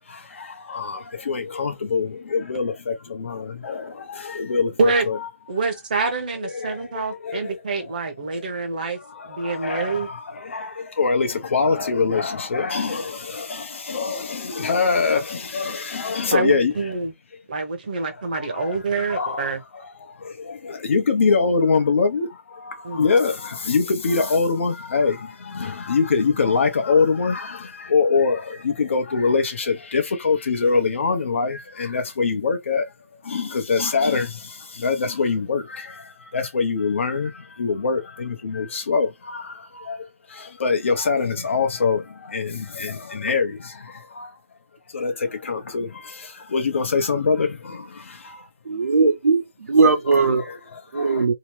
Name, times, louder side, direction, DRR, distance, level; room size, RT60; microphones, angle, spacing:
voice 1, 0.1-4.8 5.1-5.2 6.4-8.0 8.3-8.5 8.9-16.9 18.1-32.9 33.2-44.4 44.9-48.5 50.1-51.3, left 4 dB, 55° left, 0.8 m, -24 dB
voice 2, 5.5-9.0 9.3-10.1 16.3-17.1 17.5-19.6 22.8-23.1, right 4 dB, 35° right, 0.8 m, -26 dB
voice 3, 48.7-50.4 50.9-51.3, right 4 dB, 85° right, 0.9 m, -19 dB
2.8 x 2.1 x 3.1 m
hypercardioid pair, 175°, 8 cm